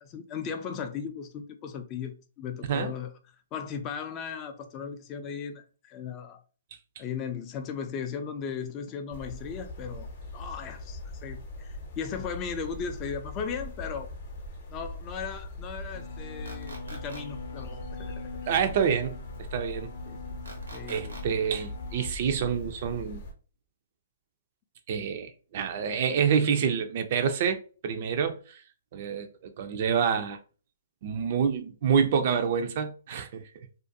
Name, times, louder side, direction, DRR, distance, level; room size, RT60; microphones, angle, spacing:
voice 1, 0.0-3.1 3.5-6.4 7.0-14.1 14.7-18.3 20.1-20.2 20.7-21.2, left 6 dB, 30° left, 0.3 m, -37 dB
sound 1, 9.1-23.3, left 1 dB, 50° left, 0.7 m, -41 dB
sound 2, 15.9-22.1, left 4 dB, 90° left, 0.5 m, -43 dB
sound 3, 16.5-17.2 20.5-21.2, right 2 dB, 85° right, 0.7 m, -44 dB
voice 2, 18.5-19.2 19.5-19.9 20.9-23.2 24.9-28.6 28.9-30.4 31.0-33.7, right 7 dB, 50° right, 0.3 m, -27 dB
2.4 x 2.2 x 2.6 m
hypercardioid pair, 130°, 0 cm